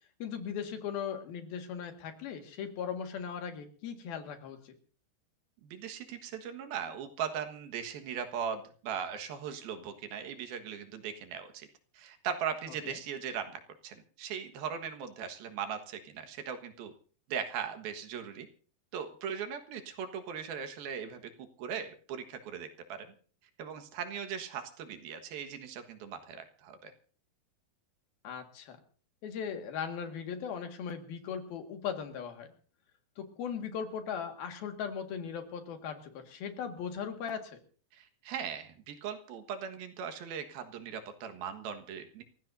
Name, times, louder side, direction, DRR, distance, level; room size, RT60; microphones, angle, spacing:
voice 1, 0.2-4.8 12.8-13.0 28.2-28.8 29.2-32.5 33.2-37.6, left 7 dB, 80° left, 5 dB, 3.8 m, -38 dB
voice 2, 5.6-11.7 11.9-16.9 17.3-18.5 18.9-21.2 21.6-23.1 23.6-26.9 37.9-42.2, right 7 dB, 85° right, 7 dB, 3.4 m, -39 dB
28.5 x 15.5 x 2.7 m, 0.41 s
omnidirectional pair, 4.2 m